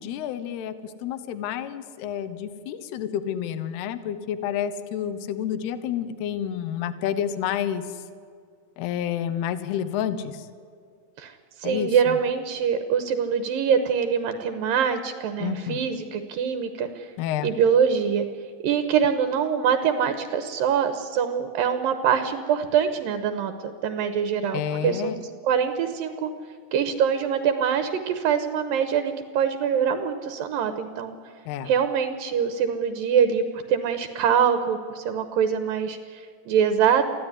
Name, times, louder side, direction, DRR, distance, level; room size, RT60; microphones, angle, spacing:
voice 1, 0.0-8.0 8.8-10.5 11.6-12.2 15.4-15.8 17.2-17.5 24.5-25.2 31.5-31.7, left 9 dB, 80° left, 12 dB, 3.0 m, -29 dB
voice 2, 11.6-17.1 17.4-18.3 18.6-25.2 25.4-26.3 26.7-31.1 31.7-37.1, right 7 dB, 70° right, 9 dB, 2.6 m, -24 dB
24.0 x 15.5 x 9.8 m, 2.3 s
omnidirectional pair, 4.6 m